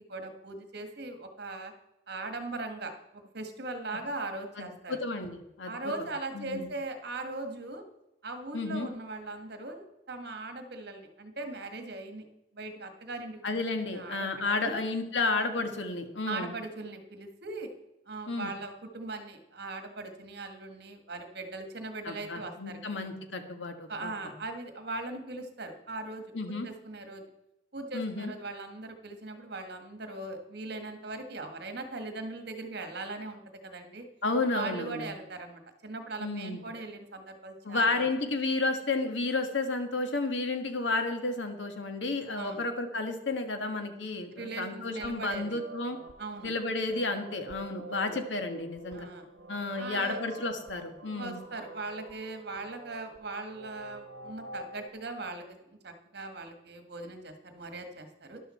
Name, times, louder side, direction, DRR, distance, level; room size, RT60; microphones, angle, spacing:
voice 1, 0.0-1.7 2.1-5.0 5.6-7.8 8.2-12.2 12.5-13.6 13.9-14.8 16.3-17.7 18.1-22.8 23.9-27.2 27.7-34.0 34.5-38.2 42.4-42.6 44.3-45.6 46.2-46.5 47.9-48.2 48.9-49.3 49.8-50.2 51.1-58.4, right 2 dB, 60° right, 6 dB, 1.6 m, -40 dB
voice 2, 4.6-5.9 6.3-6.7 8.5-8.9 13.4-16.5 18.3-18.5 22.0-24.1 26.3-26.7 27.9-28.3 34.2-35.0 36.2-36.6 37.6-46.0 46.4-49.1 49.5-51.4, left 3 dB, 75° left, 6 dB, 1.6 m, -32 dB
sound 1, 44.9-54.9, right 2 dB, 85° right, 1.1 m, -46 dB
13.0 x 11.0 x 4.3 m, 0.90 s
head